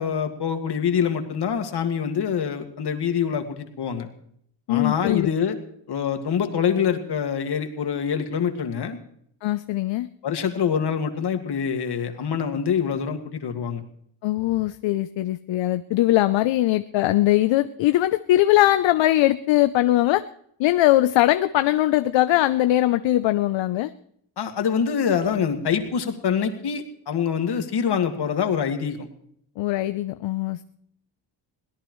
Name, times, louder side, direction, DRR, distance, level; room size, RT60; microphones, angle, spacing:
voice 1, 0.0-4.1 4.7-5.6 5.9-9.0 10.2-13.8 24.4-29.1, left 7 dB, 60° left, 6 dB, 2.1 m, -25 dB
voice 2, 4.7-5.3 9.4-10.1 14.2-20.2 20.6-23.9 29.6-30.6, left 15 dB, 80° left, 13 dB, 0.6 m, -21 dB
22.5 x 17.0 x 3.1 m, 0.68 s
cardioid pair, 105°, 45 cm